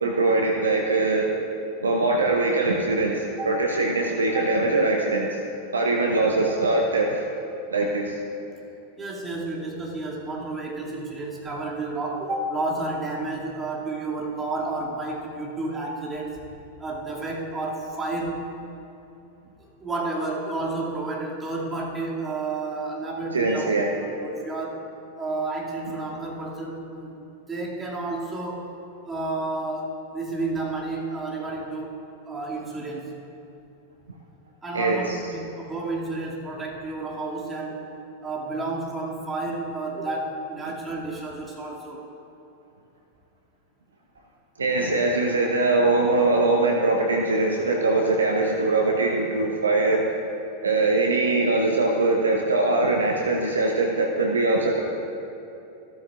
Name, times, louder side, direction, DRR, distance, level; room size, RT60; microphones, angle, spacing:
voice 1, 0.0-1.3 1.8-5.4 5.7-7.3 7.7-8.2 23.3-23.9 34.7-35.2 44.6-50.1 50.6-54.8, right 2 dB, 75° right, 0 dB, 0.9 m, -22 dB
voice 2, 9.0-16.4 16.8-18.4 19.8-24.8 25.2-27.1 27.5-28.7 29.0-32.0 32.3-33.2 34.6-37.9 38.2-42.0, right 2 dB, 15° right, -4 dB, 2.4 m, -31 dB
15.0 x 13.5 x 2.5 m, 2.8 s
figure-of-eight pair, 90°, 0 cm